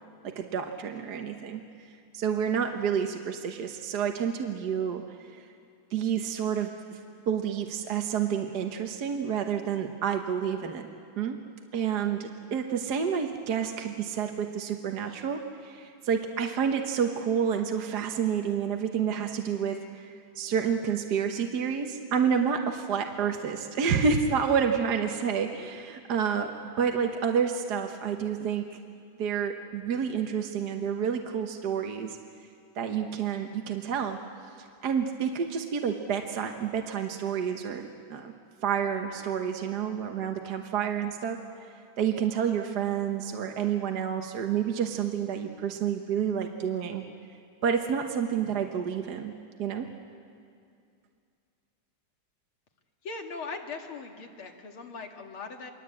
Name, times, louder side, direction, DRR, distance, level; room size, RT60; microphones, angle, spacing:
voice 1, 0.2-1.6 2.1-5.0 5.3-5.4 5.9-6.7 7.3-10.9 11.2-11.4 11.7-28.7 29.2-32.2 32.8-34.2 34.8-38.3 38.6-41.4 42.0-47.0 47.6-49.3 49.6-49.9, right 7 dB, 55° right, 4 dB, 1.6 m, -29 dB
voice 2, 53.0-55.7, left 4 dB, 85° left, 3 dB, 3.0 m, -39 dB
29.5 x 22.5 x 8.5 m, 2.4 s
omnidirectional pair, 2.3 m